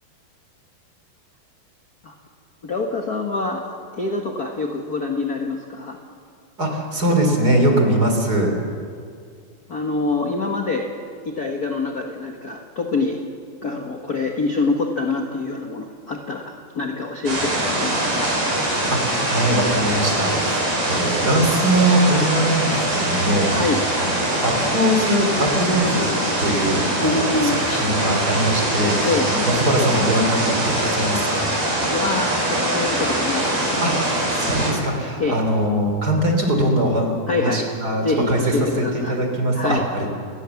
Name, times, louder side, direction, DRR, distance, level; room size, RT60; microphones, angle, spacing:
voice 1, 2.6-6.0 9.7-10.9 11.2-13.2 13.6-18.3 23.5-23.8 27.0-27.8 29.0-29.3 31.8-33.9 35.2-35.4 37.3-37.7 38.0-39.2 39.5-39.8, left 3 dB, 55° left, 2 dB, 1.0 m, -25 dB
voice 2, 6.6-8.5 18.9-23.5 24.0-31.5 33.8-37.1 37.4-38.6 38.9-40.1, right 1 dB, 25° right, 3 dB, 3.7 m, -21 dB
sound 1, 17.3-34.7, right 1 dB, 45° right, 6.7 m, -23 dB
29.0 x 19.5 x 7.2 m, 2.2 s
omnidirectional pair, 4.4 m